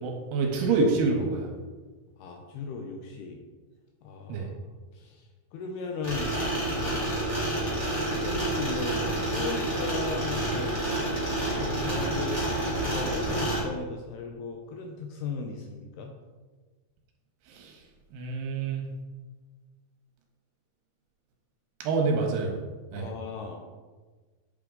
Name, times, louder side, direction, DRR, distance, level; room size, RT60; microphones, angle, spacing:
voice 1, 0.0-1.5 4.3-4.5 17.5-17.8 18.1-18.9 21.8-22.6 22.9-23.1, right 4 dB, 75° right, 2 dB, 2.7 m, -27 dB
voice 2, 2.2-3.4 4.0-4.5 4.9-6.4 6.7-7.0 7.8-10.7 11.5-12.4 12.7-16.1 22.9-23.7, left 4 dB, 80° left, 3 dB, 2.4 m, -37 dB
sound 1, 6.0-13.6, right 1 dB, 25° left, 1.5 m, -29 dB
8.4 x 5.9 x 3.8 m, 1.3 s
omnidirectional pair, 5.1 m